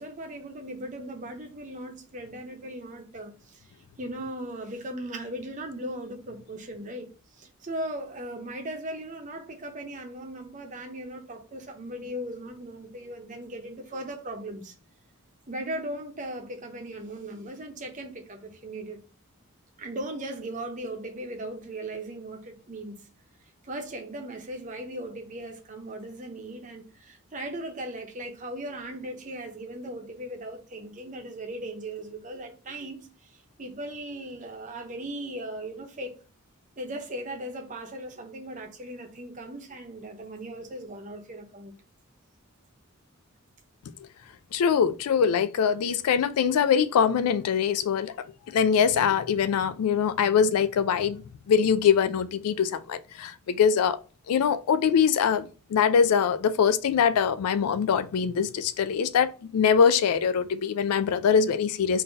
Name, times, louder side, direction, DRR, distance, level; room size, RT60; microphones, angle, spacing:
voice 1, 0.0-3.7 4.0-7.1 7.3-14.7 15.5-19.0 19.8-23.0 23.6-36.1 36.8-41.7, right 1 dB, 35° right, 0.8 m, -38 dB
voice 2, 44.5-48.1 48.5-51.2 51.5-54.0 54.3-62.0, left 7 dB, 90° left, 0.3 m, -23 dB
3.9 x 2.7 x 3.9 m
head